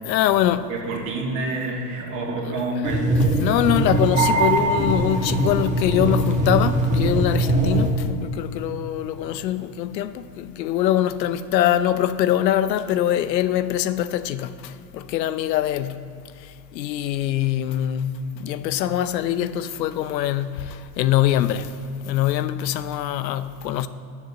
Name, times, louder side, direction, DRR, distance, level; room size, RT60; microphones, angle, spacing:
voice 1, 0.0-0.7 2.5-2.6 3.4-16.1 16.7-21.7 22.1-23.9, left 12 dB, 80° left, 0.8 m, -23 dB
voice 2, 0.7-3.1, right 2 dB, 40° right, 2.4 m, -28 dB
sound 1, 2.8-7.9, right 1 dB, 15° right, 1.4 m, -21 dB
10.5 x 7.2 x 7.0 m
supercardioid pair, 135°, 50 cm